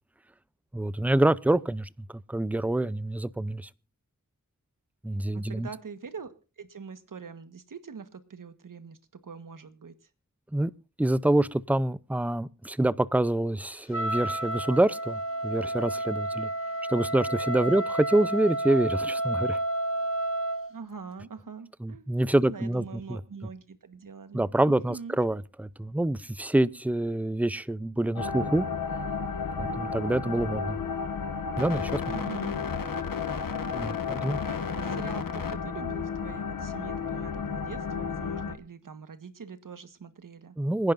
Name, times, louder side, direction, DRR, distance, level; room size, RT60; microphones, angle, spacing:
voice 1, 0.7-3.7 5.0-5.7 10.5-10.7 11.0-16.5 16.9-19.6 21.8-23.2 24.3-28.7 29.6-30.8 31.6-32.0 33.7-34.4 40.6-40.9, right 1 dB, 5° right, 0.6 m, -26 dB
voice 2, 5.1-9.0 9.2-9.9 17.6-17.8 20.7-22.1 22.4-25.2 32.0-32.6 34.4-40.6, right 5 dB, 75° right, 1.5 m, -43 dB
Wind instrument woodwind instrument, 13.9-20.7, right 1 dB, 45° left, 1.3 m, -31 dB
sound 1, 28.2-38.5, left 5 dB, 85° left, 1.4 m, -32 dB
26.5 x 10.5 x 2.6 m
wide cardioid pair, 60°, 33 cm